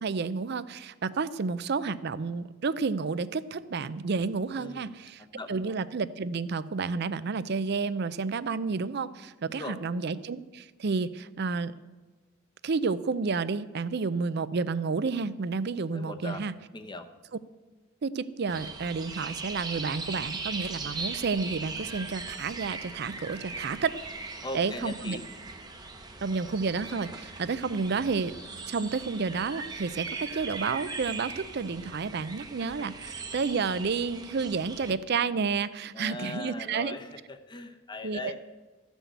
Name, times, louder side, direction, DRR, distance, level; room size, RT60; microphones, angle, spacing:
voice 1, 0.0-11.8 12.6-16.5 18.0-24.0 24.5-25.2 26.2-28.3 28.7-37.0 38.0-38.3, right 4 dB, 55° right, 16 dB, 0.5 m, -30 dB
voice 2, 4.5-5.0 5.3-5.7 9.5-9.8 15.9-16.4 16.7-17.1 24.4-25.2 35.9-38.3, left 2 dB, 20° left, 7 dB, 0.8 m, -39 dB
sound 1, 18.5-34.9, right 3 dB, 20° right, 0.9 m, -40 dB
14.0 x 6.2 x 8.0 m, 1.3 s
head